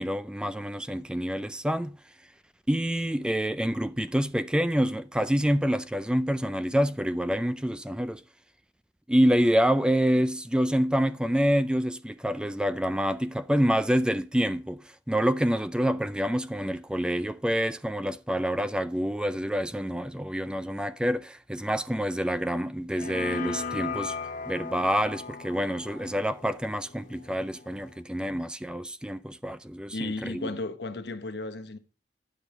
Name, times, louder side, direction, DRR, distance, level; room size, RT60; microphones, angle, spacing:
voice 1, 0.0-2.0 2.7-8.2 9.1-24.2 24.5-30.5, equal, 5° right, 0.3 m, -27 dB
sound 1, 22.9-28.0, left 5 dB, 45° left, 0.6 m, -38 dB
voice 2, 29.9-31.8, left 2 dB, 70° left, 1.0 m, -34 dB
9.8 x 6.9 x 4.3 m
head